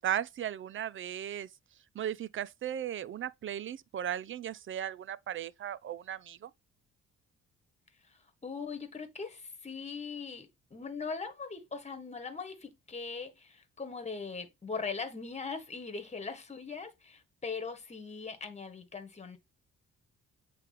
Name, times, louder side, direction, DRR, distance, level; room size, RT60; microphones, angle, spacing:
voice 1, 0.0-1.5 1.9-6.5, right 10 dB, 45° right, 0.4 m, -36 dB
voice 2, 8.1-19.4, left 5 dB, 20° left, 1.5 m, -40 dB
8.2 x 3.3 x 3.5 m
cardioid pair, 90°, 30 cm